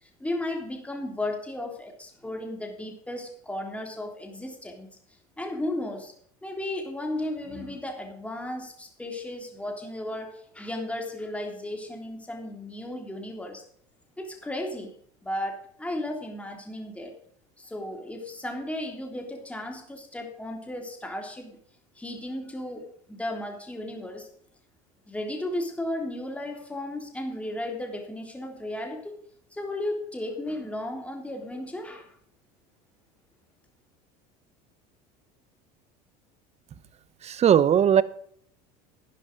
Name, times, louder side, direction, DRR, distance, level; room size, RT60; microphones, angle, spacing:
voice 1, 0.0-4.9 5.4-6.1 6.4-13.6 14.2-14.9 15.2-17.1 17.6-21.6 22.0-24.3 25.1-29.1 29.5-32.2, left 1 dB, 5° left, 3 dB, 3.5 m, -34 dB
voice 2, 37.2-38.0, right 9 dB, 35° right, 18 dB, 0.9 m, -19 dB
11.5 x 10.5 x 5.3 m, 0.62 s
supercardioid pair, 105°, 20 cm